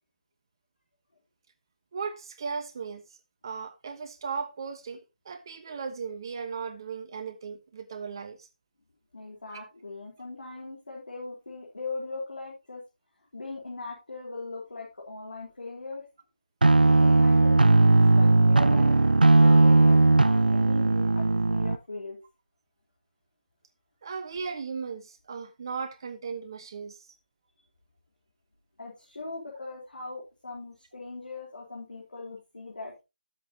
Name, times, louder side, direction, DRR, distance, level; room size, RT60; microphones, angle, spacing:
voice 1, 1.9-3.0 3.4-5.0 5.2-8.5 9.5-9.7 21.0-21.1 24.0-27.0, right 5 dB, 25° right, 1.2 m, -36 dB
voice 2, 9.1-12.8 13.3-16.0 16.9-22.2 28.8-32.9, left 3 dB, 60° left, 3.9 m, -40 dB
sound 1, 16.6-21.8, right 2 dB, 65° right, 0.8 m, -18 dB
12.5 x 7.8 x 2.9 m
figure-of-eight pair, 165°, 5 cm